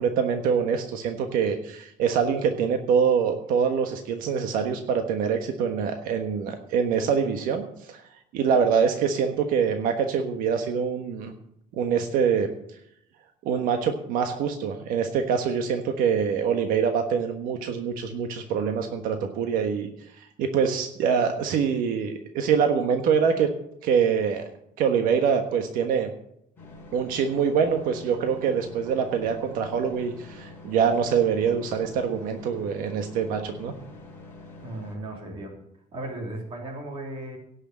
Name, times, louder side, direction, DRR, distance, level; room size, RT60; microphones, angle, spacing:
voice 1, 0.0-8.0 8.3-11.3 11.7-12.5 13.4-23.5 23.8-24.4 24.8-26.1 26.9-33.7, right 7 dB, 80° right, 5 dB, 1.4 m, -25 dB
sound 1, 26.6-35.0, left 2 dB, 15° left, 4.7 m, -45 dB
voice 2, 34.6-35.5 35.9-37.4, right 1 dB, 40° right, 1 dB, 3.4 m, -36 dB
17.0 x 6.5 x 7.6 m, 0.76 s
cardioid pair, 180°, 14 cm